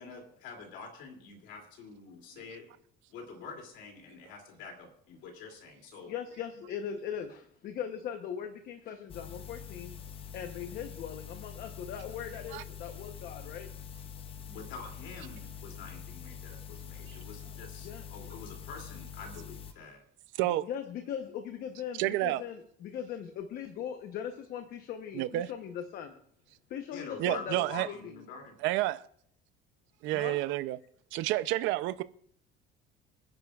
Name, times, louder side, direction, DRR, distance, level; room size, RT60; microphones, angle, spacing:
voice 1, 0.0-2.7 3.1-6.1 14.5-20.0 26.9-28.6, left 4 dB, 65° left, 2.8 m, -46 dB
voice 2, 6.1-9.9 10.3-13.7 17.8-18.1 20.6-26.2 26.7-28.2 30.1-30.4, left 8 dB, 50° left, 1.0 m, -40 dB
sound 1, 9.1-19.7, left 8 dB, 30° left, 0.6 m, -45 dB
voice 3, 20.3-20.7 22.0-22.4 25.1-25.5 27.2-27.9 28.6-29.1 30.0-30.8 31.1-32.0, right 16 dB, 70° right, 0.6 m, -30 dB
26.5 x 10.5 x 2.4 m
cardioid pair, 175°, 20 cm